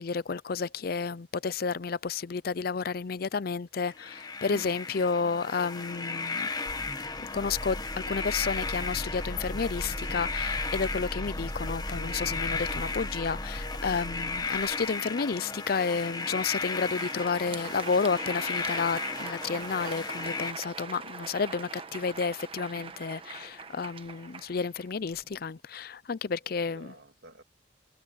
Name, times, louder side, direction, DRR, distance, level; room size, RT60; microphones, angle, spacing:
voice 1, 0.0-6.5 7.3-26.9, left 5 dB, 55° left, 0.5 m, -31 dB
sound 1, 3.9-20.5, left 4 dB, 20° left, 1.2 m, -35 dB
voice 2, 4.5-4.8 26.3-27.4, right 1 dB, 70° right, 2.7 m, -51 dB
sound 2, 6.7-14.9, equal, ahead, 1.3 m, -38 dB
Crowd, 16.5-25.4, right 5 dB, 30° right, 1.2 m, -42 dB
head